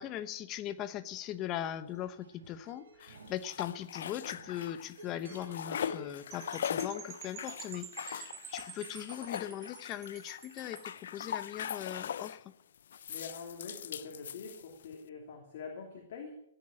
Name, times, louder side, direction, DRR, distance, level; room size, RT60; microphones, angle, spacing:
voice 1, 0.0-12.5, left 11 dB, 20° left, 11 dB, 0.8 m, -40 dB
sound 1, 1.1-7.7, right 2 dB, 85° right, 4.4 m, -54 dB
sound 2, 3.0-5.0 5.2-12.4 12.9-14.9, left 9 dB, 65° left, 0.5 m, -40 dB
Percussion / Wind chime, 6.3-11.0, right 12 dB, 20° right, 0.5 m, -49 dB
voice 2, 13.1-16.4, left 5 dB, 45° left, 0 dB, 2.9 m, -45 dB
16.0 x 9.7 x 8.7 m, 0.79 s
hypercardioid pair, 170°, 0 cm